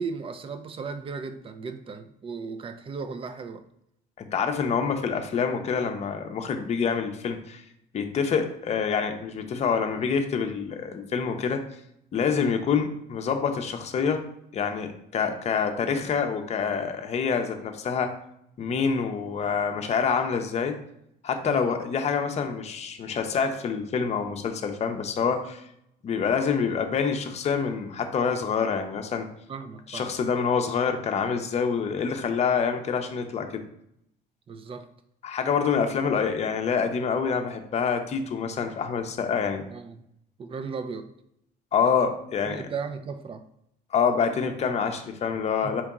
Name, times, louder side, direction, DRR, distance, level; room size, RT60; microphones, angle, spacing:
voice 1, 0.0-3.6 21.4-21.8 29.5-30.1 34.5-34.9 39.7-40.0 40.4-41.1 42.4-43.4 45.6-45.8, right 5 dB, 35° right, 9 dB, 0.5 m, -36 dB
voice 2, 4.2-7.6 7.9-11.6 12.1-14.2 14.5-18.1 18.6-20.8 21.2-25.6 26.0-29.3 29.9-33.6 35.2-39.6 41.7-42.6 43.9-45.8, left 6 dB, 40° left, 5 dB, 0.6 m, -26 dB
4.5 x 2.8 x 3.6 m, 0.75 s
cardioid pair, 110°, 17 cm